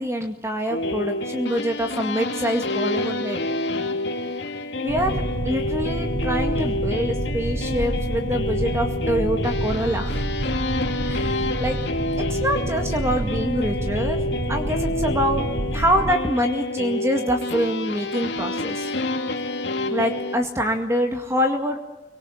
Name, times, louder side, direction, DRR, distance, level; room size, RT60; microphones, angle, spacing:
voice 1, 0.0-3.4 4.8-10.5 11.0-11.8 12.2-14.2 14.5-18.9 19.9-21.8, equal, 15° right, 4 dB, 2.1 m, -25 dB
sound 1, 0.7-20.4, left 2 dB, 75° left, 2.6 m, -28 dB
sound 2, 4.9-16.1, right 1 dB, 50° right, 1.0 m, -28 dB
25.5 x 24.5 x 8.5 m, 1.1 s
head